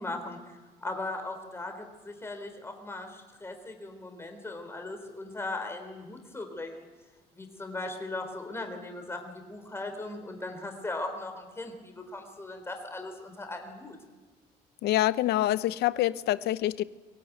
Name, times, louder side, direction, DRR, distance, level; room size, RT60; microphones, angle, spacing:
voice 1, 0.0-6.8 7.4-14.0, left 2 dB, 15° left, 5 dB, 3.7 m, -38 dB
voice 2, 14.8-16.8, left 14 dB, 75° left, 16 dB, 0.8 m, -26 dB
23.0 x 17.5 x 9.2 m, 1.3 s
cardioid pair, 110°, 17 cm